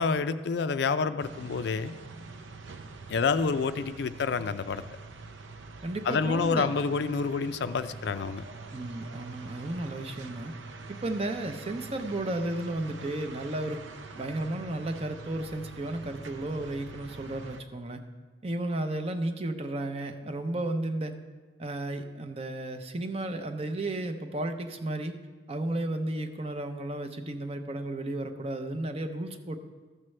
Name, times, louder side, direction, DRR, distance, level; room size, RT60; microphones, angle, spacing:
voice 1, 0.0-1.9 3.1-4.8 6.1-8.4, left 5 dB, 65° left, 11 dB, 0.4 m, -28 dB
sound 1, 1.2-17.6, right 3 dB, 85° right, 0.6 m, -45 dB
voice 2, 5.8-6.7 8.7-10.5 10.9-13.8 14.2-18.0 18.4-21.2 21.6-25.1 25.5-29.6, right 1 dB, 35° right, 7 dB, 0.6 m, -33 dB
13.5 x 7.4 x 3.2 m, 1.4 s
head